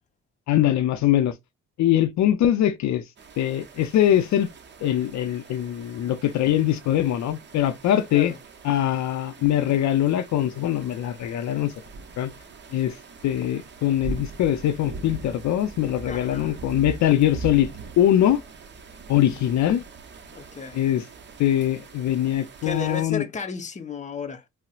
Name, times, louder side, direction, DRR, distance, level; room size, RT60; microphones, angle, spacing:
voice 1, 0.5-1.3 1.8-3.0 3.4-4.5 4.8-8.3 8.6-11.7 12.2-12.3 12.7-13.0 13.2-17.7 18.0-18.4 19.1-19.8 20.7-21.0 21.4-23.2, left 11 dB, 65° left, 0.5 m, -22 dB
sound 1, 3.2-23.0, right 4 dB, 35° right, 0.7 m, -42 dB
voice 2, 16.1-16.6 20.3-20.8 22.6-24.4, left 4 dB, 25° left, 0.7 m, -33 dB
4.0 x 2.1 x 2.3 m
cardioid pair, 90°, 30 cm